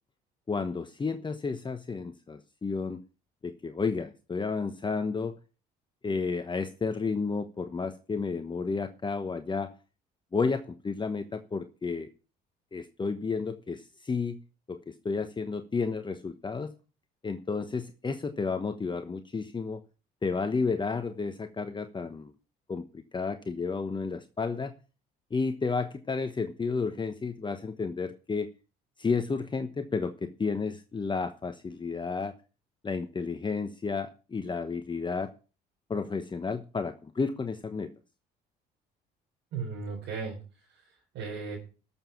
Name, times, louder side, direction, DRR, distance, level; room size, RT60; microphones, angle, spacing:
voice 1, 0.5-3.0 3.4-5.4 6.0-9.8 10.3-12.1 12.7-14.4 14.7-16.7 17.2-19.8 20.2-22.3 22.7-24.7 25.3-28.5 29.0-32.3 32.8-35.3 35.9-37.9, left 4 dB, 25° left, 8 dB, 1.1 m, -32 dB
voice 2, 39.5-41.6, right 5 dB, 70° right, -3 dB, 4.1 m, -37 dB
12.5 x 7.3 x 5.7 m, 0.35 s
supercardioid pair, 75°, 19 cm